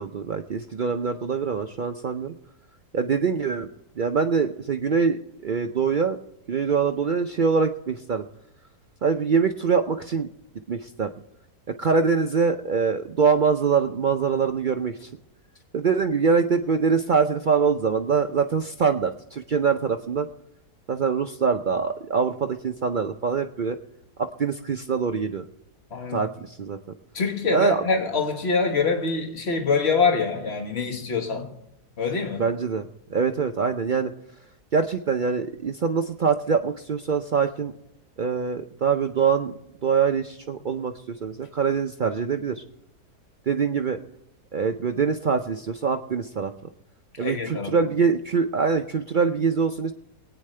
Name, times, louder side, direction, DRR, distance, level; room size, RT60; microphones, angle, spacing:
voice 1, 0.0-2.3 2.9-3.7 4.0-6.2 6.5-8.3 9.0-10.3 10.7-11.1 11.8-15.1 15.7-20.3 20.9-23.8 24.2-25.4 26.1-26.8 27.5-27.8 32.4-34.1 34.7-37.7 38.2-39.5 39.8-42.6 43.5-44.0 44.5-46.5 47.2-49.9, right 5 dB, 85° right, 0.4 m, -24 dB
voice 2, 25.9-26.3 27.1-31.5 32.0-32.4 47.2-47.7, left 4 dB, 40° left, 1.7 m, -25 dB
22.0 x 9.3 x 3.3 m
omnidirectional pair, 1.7 m